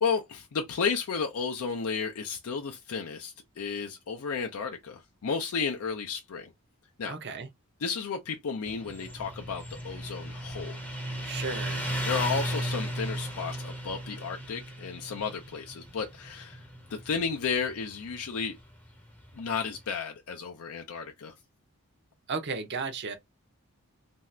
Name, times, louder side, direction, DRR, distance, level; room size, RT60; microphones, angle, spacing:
voice 1, 0.0-6.5 7.0-7.1 7.8-10.8 12.1-16.6 17.0-18.6 19.3-21.3, left 5 dB, 70° left, 0.5 m, -33 dB
voice 2, 7.1-7.5 11.2-11.9 22.3-23.2, right 4 dB, 50° right, 0.6 m, -34 dB
Motorcycle, 8.6-19.8, equal, 5° left, 0.6 m, -36 dB
2.6 x 2.4 x 3.1 m
head